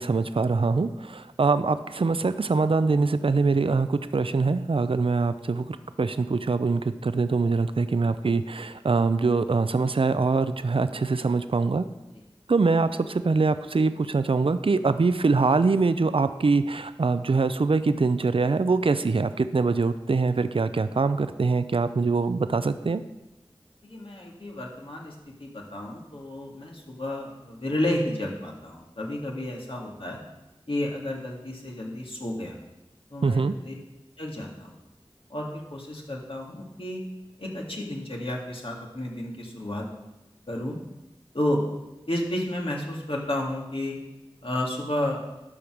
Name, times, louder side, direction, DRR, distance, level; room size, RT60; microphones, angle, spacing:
voice 1, 0.0-11.8 12.5-23.0 33.2-33.5, right 4 dB, 70° right, 12 dB, 0.4 m, -23 dB
voice 2, 23.8-30.2 30.7-32.6 33.1-33.7 34.2-34.8 35.3-37.0 37.4-39.9 40.5-40.8 41.3-41.6 42.1-44.0 44.4-45.2, left 1 dB, 70° left, -1 dB, 1.9 m, -31 dB
12.0 x 5.0 x 6.0 m, 0.98 s
wide cardioid pair, 45°, 10 cm